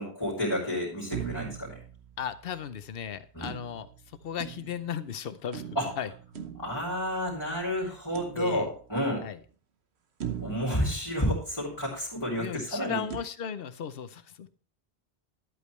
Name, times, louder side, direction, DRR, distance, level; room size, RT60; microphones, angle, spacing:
voice 1, 0.0-1.8 3.3-3.6 5.7-5.9 6.6-9.3 10.4-13.0, equal, 25° left, -5 dB, 2.8 m, -30 dB
sound 1, 1.1-2.7 3.4-5.0 5.5-7.5 8.1-9.0 9.5-9.6 10.2-11.9 13.1-13.2, right 9 dB, 85° right, 1.2 m, -41 dB
voice 2, 2.2-3.9 4.2-5.6 6.0-6.1 7.8-7.9 8.3-8.7 9.2-9.4 12.3-14.5, left 8 dB, 65° left, 13 dB, 0.9 m, -36 dB
11.0 x 8.3 x 3.1 m, 0.41 s
omnidirectional pair, 1.1 m